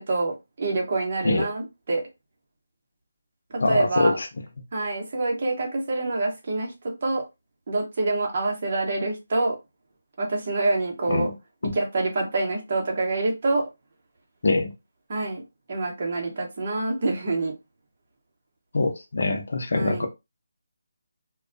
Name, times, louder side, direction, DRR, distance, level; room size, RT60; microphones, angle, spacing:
voice 1, 0.0-2.0 3.5-4.2 4.7-7.2 7.7-9.6 10.2-11.3 11.7-13.7 15.1-15.4 15.7-17.5 19.7-20.1, right 2 dB, 45° right, 0.9 m, -26 dB
voice 2, 3.6-4.3 11.1-11.3 11.6-11.7 14.4-14.7 18.7-20.1, left 2 dB, 65° left, 0.7 m, -23 dB
2.2 x 2.2 x 2.6 m
figure-of-eight pair, 160°, 0 cm